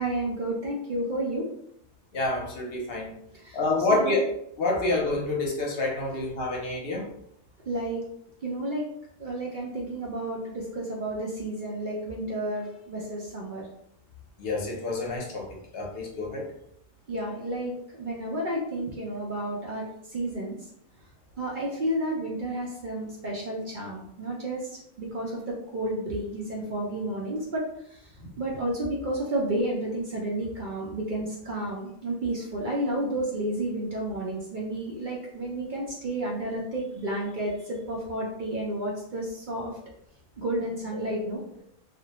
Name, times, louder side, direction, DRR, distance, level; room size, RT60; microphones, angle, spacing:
voice 1, 0.0-1.5 3.3-3.6 3.9-4.2 7.7-8.0 8.4-8.8 9.2-13.7 17.1-20.6 21.4-27.6 28.4-39.7 40.4-41.6, right 1 dB, 60° right, -3 dB, 0.5 m, -31 dB
voice 2, 2.1-3.1 3.5-4.3 4.6-7.1 14.4-16.5 28.2-28.3, left 2 dB, 55° left, -1 dB, 0.8 m, -28 dB
2.4 x 2.1 x 2.9 m, 0.72 s
omnidirectional pair, 1.3 m